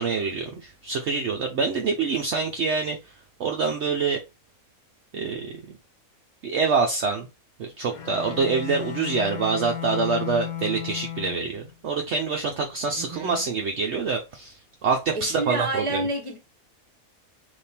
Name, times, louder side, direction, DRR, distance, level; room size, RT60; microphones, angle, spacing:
voice 1, 0.0-3.0 3.4-4.2 5.1-5.5 6.4-7.3 7.6-14.6 14.8-16.0, right 4 dB, 60° right, 0.8 m, -26 dB
Bowed string instrument, 7.9-11.7, left 10 dB, 85° left, 1.3 m, -34 dB
voice 2, 12.9-13.4 15.1-16.4, right 2 dB, 25° right, 1.0 m, -29 dB
3.5 x 2.8 x 4.2 m
omnidirectional pair, 1.5 m